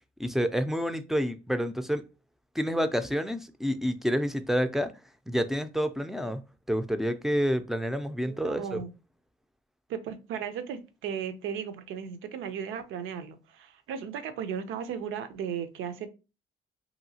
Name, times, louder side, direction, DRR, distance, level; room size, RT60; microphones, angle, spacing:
voice 1, 0.2-2.0 2.5-4.9 5.3-8.8, equal, ahead, 0.4 m, -28 dB
voice 2, 8.3-8.9 9.9-16.1, right 7 dB, 85° right, 0.5 m, -36 dB
2.8 x 2.7 x 2.7 m
cardioid pair, 90°, 20 cm